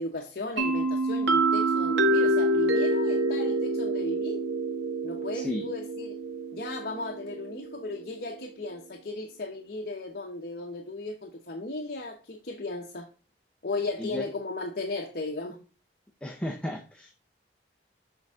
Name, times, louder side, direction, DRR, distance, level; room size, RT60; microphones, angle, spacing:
voice 1, 0.0-4.4 5.0-6.2 6.5-13.1 13.6-15.6, left 2 dB, 55° left, 0.9 m, -36 dB
sound 1, 0.6-8.2, right 2 dB, 75° right, 1.1 m, -27 dB
voice 2, 5.3-5.6 14.0-14.2 16.2-17.1, left 1 dB, 5° left, 0.8 m, -34 dB
6.8 x 5.4 x 3.5 m
head